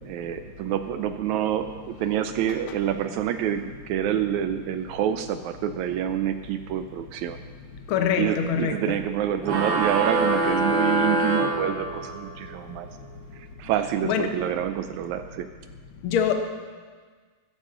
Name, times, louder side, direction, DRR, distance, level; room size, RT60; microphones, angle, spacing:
voice 1, 0.0-7.4 8.2-12.9 13.3-15.5, right 10 dB, 80° right, 9 dB, 1.7 m, -27 dB
voice 2, 7.9-9.0 14.0-14.3 16.0-16.3, left 8 dB, 85° left, 5 dB, 1.1 m, -24 dB
sound 1, 9.4-12.3, right 2 dB, 60° right, 1.3 m, -24 dB
15.0 x 14.0 x 3.8 m, 1.5 s
omnidirectional pair, 3.9 m